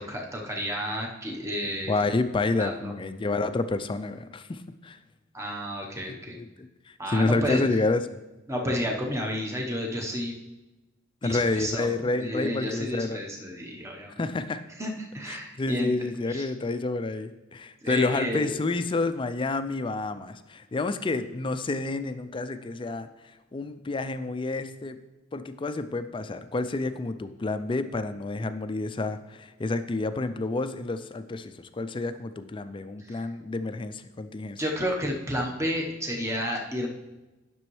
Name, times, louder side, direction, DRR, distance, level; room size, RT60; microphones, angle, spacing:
voice 1, 0.0-2.0 2.6-2.9 5.3-6.4 7.0-7.6 8.5-10.3 11.2-14.2 14.8-16.0 16.3-16.5 17.8-18.6 33.1-33.2 34.6-36.9, equal, 15° right, 0 dB, 1.0 m, -31 dB
voice 2, 1.9-5.0 6.3-6.7 7.1-8.2 11.2-13.2 14.2-14.6 15.3-23.1 23.5-25.0 25.3-34.6, left 3 dB, 25° left, 11 dB, 0.4 m, -29 dB
10.5 x 6.1 x 3.2 m, 1.1 s
head